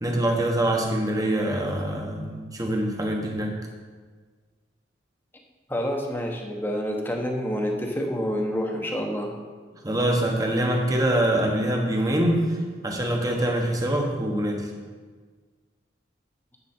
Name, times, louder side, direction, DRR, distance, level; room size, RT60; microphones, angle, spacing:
voice 1, 0.0-3.5 9.8-12.6 12.8-14.7, right 1 dB, 20° right, 1 dB, 1.2 m, -24 dB
voice 2, 5.7-9.3, equal, 10° left, 1 dB, 1.1 m, -28 dB
9.7 x 8.0 x 4.4 m, 1.5 s
head